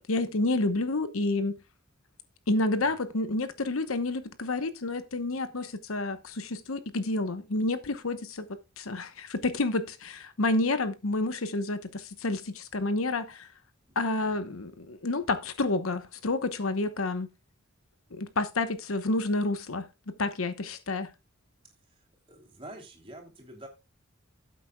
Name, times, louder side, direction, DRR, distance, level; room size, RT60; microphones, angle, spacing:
voice 1, 0.1-1.5 2.5-8.5 8.8-13.5 13.9-17.3 18.1-21.1, left 2 dB, 85° left, 1.0 m, -29 dB
voice 2, 21.9-23.7, right 1 dB, 25° right, 3.3 m, -47 dB
16.0 x 8.2 x 2.3 m
head